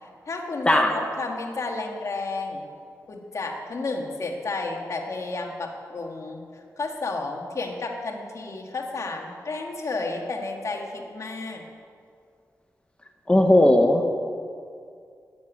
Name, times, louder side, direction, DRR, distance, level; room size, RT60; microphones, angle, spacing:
voice 1, 0.2-2.7 3.1-11.6, left 3 dB, 55° left, 2 dB, 1.7 m, -32 dB
voice 2, 13.3-14.0, left 1 dB, 15° left, 3 dB, 0.9 m, -17 dB
12.0 x 7.4 x 9.6 m, 2.4 s
wide cardioid pair, 100°, 6 cm